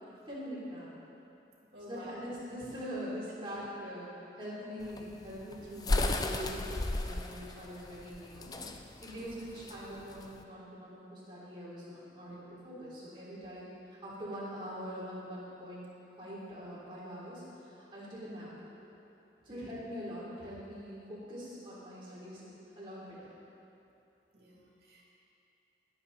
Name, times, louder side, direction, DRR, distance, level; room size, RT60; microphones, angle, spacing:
voice 1, 0.3-0.9 1.9-4.1 4.4-8.5 9.0-13.7 14.0-15.8 16.2-17.4 17.9-18.5 19.4-22.5 22.8-23.2, equal, 30° right, -8 dB, 3.6 m, -43 dB
voice 2, 1.7-2.1 3.4-3.7 9.8-9.9 12.3-12.4 19.5-19.7 24.3-25.0, equal, 60° right, -4 dB, 2.9 m, -51 dB
sound 1, 4.8-10.4, left 2 dB, 20° left, 0.5 m, -34 dB
22.5 x 8.2 x 4.2 m, 2.9 s
head